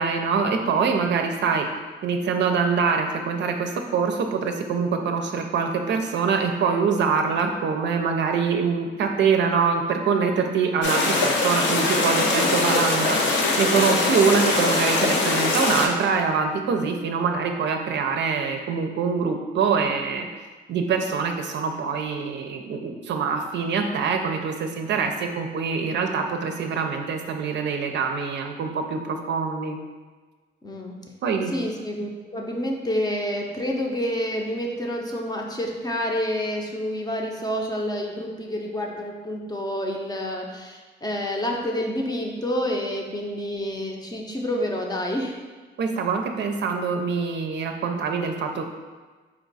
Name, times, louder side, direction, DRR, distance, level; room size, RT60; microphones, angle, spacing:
voice 1, 0.0-1.7 2.0-20.3 20.7-29.8 31.2-31.5 45.8-48.6, right 5 dB, 65° right, 4 dB, 0.5 m, -24 dB
sound 1, 10.8-15.9, left 3 dB, 65° left, 0.7 m, -22 dB
voice 2, 30.6-31.0 31.5-45.4, equal, 20° left, 0 dB, 0.6 m, -28 dB
4.4 x 2.4 x 4.0 m, 1.3 s
cardioid pair, 90°, 20 cm